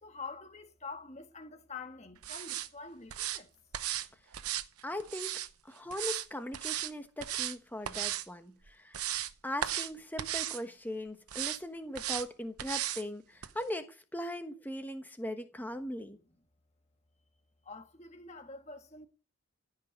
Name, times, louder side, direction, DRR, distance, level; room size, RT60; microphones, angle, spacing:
voice 1, 0.0-3.5 17.6-19.1, left 4 dB, 30° left, 1.5 m, -46 dB
sound 1, 2.2-2.7 3.1-3.4 3.7-4.1 4.3-5.5 5.9-6.3 6.5-6.9 7.2-7.6 7.8-8.2 8.7-9.3 9.6-9.9 10.2-10.6 11.3-11.6 11.9-12.3 12.6-13.0 13.4-13.5, right 12 dB, 90° right, 0.9 m, -35 dB
voice 2, 4.8-5.3 5.6-9.0 9.4-16.2, left 1 dB, 10° left, 1.2 m, -39 dB
15.5 x 5.6 x 9.6 m
head